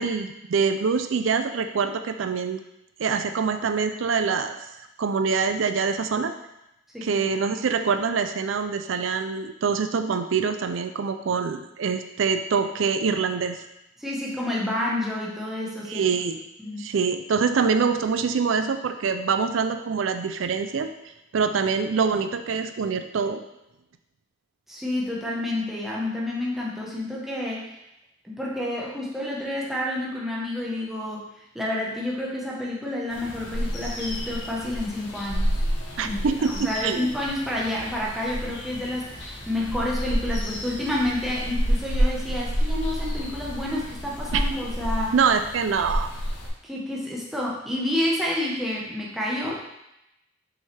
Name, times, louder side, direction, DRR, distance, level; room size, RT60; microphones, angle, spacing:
voice 1, 0.0-2.6 3.0-4.7 5.0-6.3 7.0-13.6 15.9-16.4 16.8-20.9 21.3-23.4 36.0-37.1 44.3-44.4 45.1-46.1, right 5 dB, 85° right, 8 dB, 0.4 m, -25 dB
voice 2, 6.9-7.3 14.0-16.0 16.6-16.9 24.7-27.7 28.2-31.3 31.5-35.6 36.0-45.1 46.6-49.7, left 1 dB, ahead, -5 dB, 1.2 m, -29 dB
sound 1, 33.1-46.5, equal, 70° left, 1.4 m, -29 dB
6.3 x 5.5 x 3.4 m, 0.88 s
head